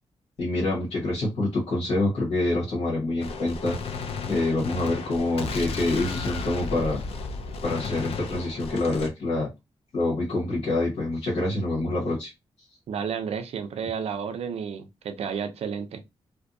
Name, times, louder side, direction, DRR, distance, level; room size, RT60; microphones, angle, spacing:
voice 1, 0.4-3.8 4.3-7.0 7.6-9.5 9.9-12.3, left 2 dB, 90° left, 1.1 m, -26 dB
Gunshot gunfire, 3.2-9.1, left 4 dB, 70° left, 0.4 m, -33 dB
voice 2, 12.9-16.0, right 7 dB, 75° right, 0.4 m, -31 dB
2.5 x 2.1 x 2.6 m
wide cardioid pair, 150°, 11 cm